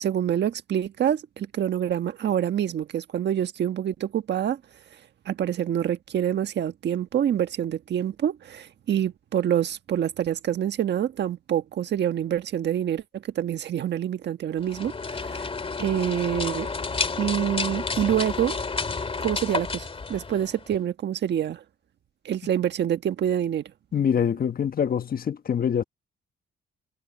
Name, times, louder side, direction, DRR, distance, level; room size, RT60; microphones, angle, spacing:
voice 1, 0.0-4.6 5.2-15.5 15.8-16.7 17.2-18.6 19.2-21.6 22.2-23.7, right 10 dB, 60° right, 1.4 m, -26 dB
sound 1, 14.6-20.8, left 4 dB, 30° left, 2.4 m, -30 dB
voice 2, 23.9-25.8, left 8 dB, 50° left, 1.3 m, -24 dB
cardioid pair, 90°, 20 cm